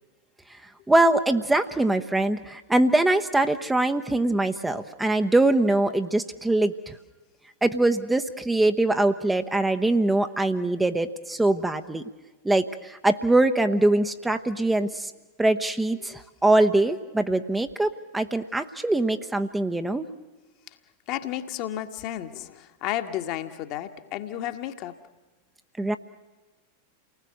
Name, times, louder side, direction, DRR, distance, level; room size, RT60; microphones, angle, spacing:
voice 1, 0.9-6.9 7.6-12.0 12.4-15.1 15.4-20.1 25.8-26.0, right 2 dB, 5° right, 1.0 m, -23 dB
voice 2, 21.1-25.0, left 12 dB, 40° left, 1.7 m, -32 dB
29.5 x 19.5 x 7.9 m
figure-of-eight pair, 90°, 0 cm